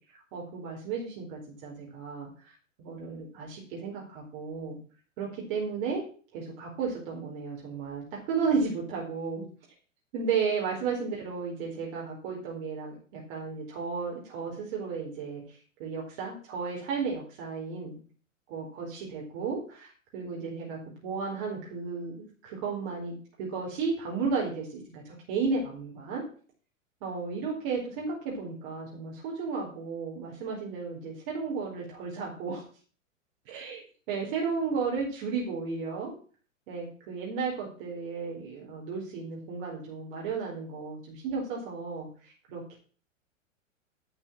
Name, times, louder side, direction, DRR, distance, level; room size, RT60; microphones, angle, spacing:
voice 1, 0.3-4.8 5.2-6.0 6.3-9.4 10.1-18.0 18.5-26.2 27.0-32.6 33.5-33.8 34.1-36.1 36.7-42.8, right 5 dB, 45° right, -2 dB, 4.1 m, -34 dB
11.0 x 6.1 x 7.2 m, 0.40 s
figure-of-eight pair, 105°, 39 cm